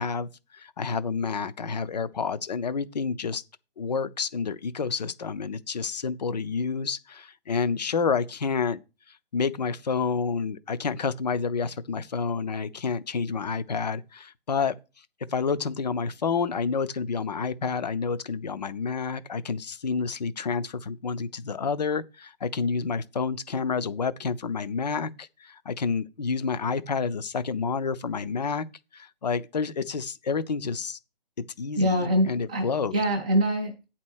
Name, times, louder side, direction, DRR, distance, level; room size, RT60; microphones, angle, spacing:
voice 1, 0.0-3.4 3.8-8.8 9.3-14.7 15.3-28.7 28.9-31.0 31.6-33.0, left 5 dB, 45° left, 0.6 m, -29 dB
voice 2, 31.8-32.7 32.9-33.8, equal, 5° right, 0.6 m, -24 dB
8.6 x 4.3 x 6.3 m
hypercardioid pair, 170°, 31 cm